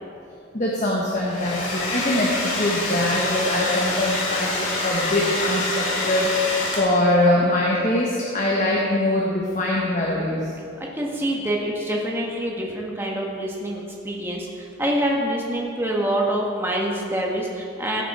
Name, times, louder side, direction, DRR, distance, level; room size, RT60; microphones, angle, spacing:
voice 1, 0.5-6.3 6.8-10.5, left 1 dB, 35° left, -3 dB, 1.3 m, -22 dB
Domestic sounds home sounds, 1.1-7.2, left 2 dB, 65° left, 2.9 m, -27 dB
voice 2, 10.9-18.0, right 1 dB, 10° right, -2 dB, 1.5 m, -26 dB
17.0 x 8.1 x 4.3 m, 2.5 s
head